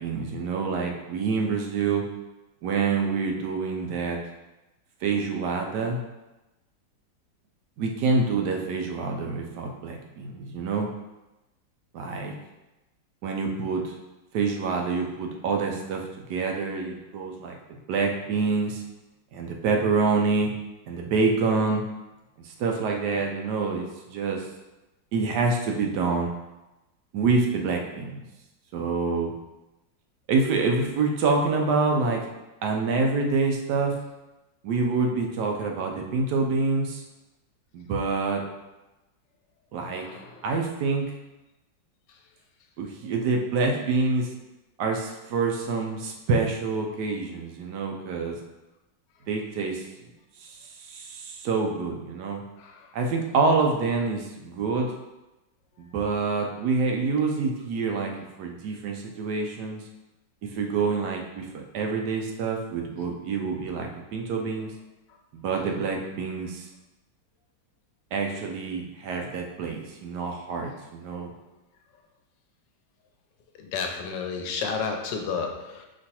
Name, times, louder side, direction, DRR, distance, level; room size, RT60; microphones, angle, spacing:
voice 1, 0.0-2.0 2.6-4.2 5.0-6.0 7.8-10.9 11.9-12.3 13.2-13.9 14.3-17.6 17.9-18.8 19.3-20.5 20.9-21.8 22.4-24.5 25.1-26.3 27.1-28.2 28.7-29.3 30.3-32.3 32.6-34.0 34.6-37.0 37.7-38.4 39.7-40.0 40.4-41.0 42.8-44.3 44.8-48.4 49.3-49.9 50.4-50.6 50.8-52.4 52.9-54.9 55.8-58.1 58.4-59.8 60.5-64.7 65.3-66.7 68.1-71.3, right 4 dB, 75° right, 1 dB, 1.1 m, -26 dB
voice 2, 39.9-40.4 52.6-52.8 73.5-75.9, left 5 dB, 80° left, 3 dB, 1.2 m, -32 dB
5.2 x 3.1 x 2.8 m, 1.0 s
omnidirectional pair, 1.9 m